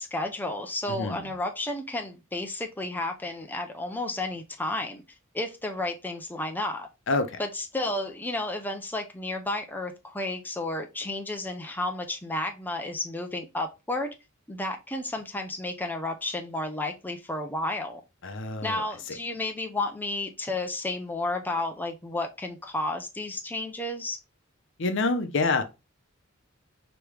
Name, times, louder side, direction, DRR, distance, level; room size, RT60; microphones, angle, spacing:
voice 1, 0.0-5.0 5.3-6.9 7.4-14.1 14.5-18.0 18.6-24.2, left 2 dB, 10° left, 0.5 m, -32 dB
voice 2, 18.2-18.8 24.8-25.6, left 3 dB, 65° left, 0.7 m, -26 dB
5.0 x 3.0 x 3.2 m
head